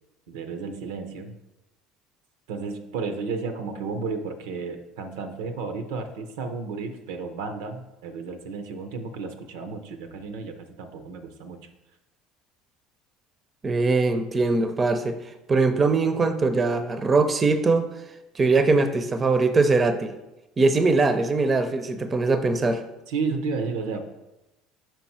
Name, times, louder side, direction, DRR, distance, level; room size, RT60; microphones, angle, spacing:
voice 1, 0.3-1.4 2.5-11.7 23.1-24.0, right 4 dB, 75° right, 7 dB, 0.6 m, -32 dB
voice 2, 13.6-15.2 15.5-17.9 18.4-20.1 20.6-22.8, right 3 dB, 30° right, 10 dB, 0.6 m, -21 dB
5.3 x 4.4 x 4.3 m, 0.98 s
hypercardioid pair, 70°, 0 cm